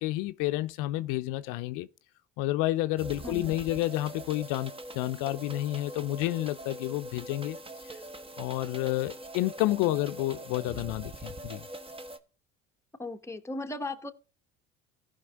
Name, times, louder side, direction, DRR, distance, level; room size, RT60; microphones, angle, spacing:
voice 1, 0.0-1.9 2.4-7.6 7.9-8.0 8.4-11.6, left 16 dB, 70° left, 0.6 m, -30 dB
sound 1, 3.0-12.2, right 1 dB, 15° right, 1.1 m, -43 dB
voice 2, 3.2-3.5 13.0-14.1, left 2 dB, 10° left, 1.1 m, -37 dB
15.0 x 5.4 x 3.7 m
supercardioid pair, 80°, 34 cm